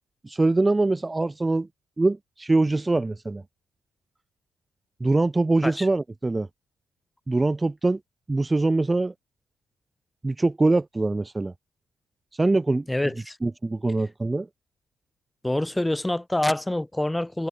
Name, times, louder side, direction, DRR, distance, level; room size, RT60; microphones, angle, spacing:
voice 1, 0.2-1.7 2.0-3.4 5.0-6.5 7.3-8.0 8.3-9.1 10.2-11.5 12.3-12.9 13.4-14.5, right 2 dB, 20° right, 0.4 m, -23 dB
voice 2, 12.9-13.4 15.4-17.5, left 1 dB, 10° left, 0.8 m, -26 dB
cardioid pair, 90°, 0 cm